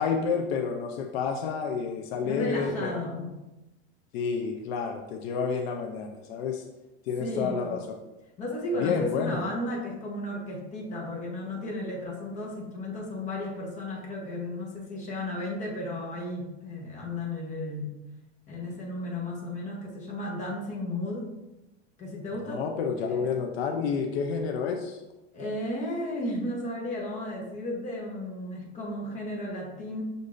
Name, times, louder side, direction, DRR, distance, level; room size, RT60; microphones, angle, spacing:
voice 1, 0.0-3.0 4.1-6.6 7.1-7.8 8.8-9.4 22.3-25.0, left 6 dB, 65° left, 3 dB, 0.5 m, -29 dB
voice 2, 2.2-3.4 7.2-7.8 8.4-18.0 18.5-21.3 22.0-22.7 23.0-23.2 25.3-30.0, left 1 dB, 20° left, -2 dB, 0.9 m, -34 dB
6.6 x 2.6 x 2.5 m, 1.0 s
supercardioid pair, 155°, 34 cm